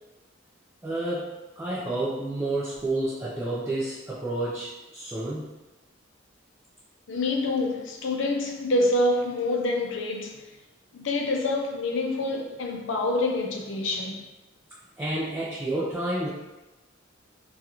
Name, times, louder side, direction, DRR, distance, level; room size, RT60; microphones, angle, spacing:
voice 1, 0.8-1.3 1.6-5.5 15.0-16.3, right 2 dB, 15° right, 0.4 m, -30 dB
voice 2, 7.1-10.4 10.9-14.2, left 2 dB, 65° left, 0.5 m, -26 dB
3.7 x 2.3 x 2.8 m
head